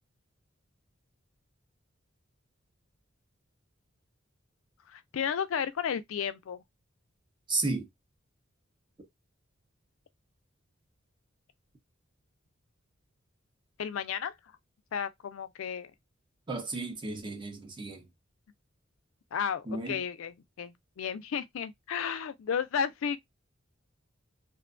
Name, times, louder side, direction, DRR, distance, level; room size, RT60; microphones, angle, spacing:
voice 1, 4.9-6.6 13.8-14.3 14.9-15.9 19.3-23.2, left 7 dB, 85° left, 0.4 m, -33 dB
voice 2, 7.5-7.9 16.5-18.0 19.7-20.0, right 3 dB, 25° right, 0.6 m, -33 dB
2.6 x 2.2 x 2.4 m
head